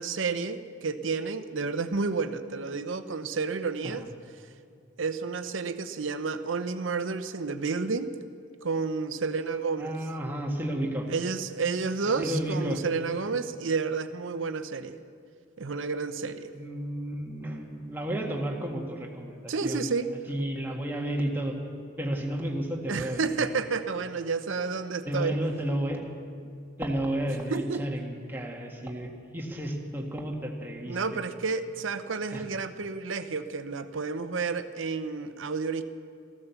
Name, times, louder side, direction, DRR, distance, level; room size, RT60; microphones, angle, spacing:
voice 1, 0.0-4.1 5.0-8.1 8.6-10.0 11.1-15.0 15.6-16.5 19.5-20.1 22.9-25.4 27.5-27.8 30.8-35.8, right 4 dB, 75° right, 10 dB, 0.8 m, -30 dB
voice 2, 9.8-11.1 12.2-12.8 16.5-19.9 20.3-21.6 22.0-23.4 25.1-26.1 26.8-31.2 32.3-32.4, right 1 dB, 10° right, 0 dB, 1.7 m, -32 dB
14.5 x 13.5 x 7.1 m, 2.4 s
head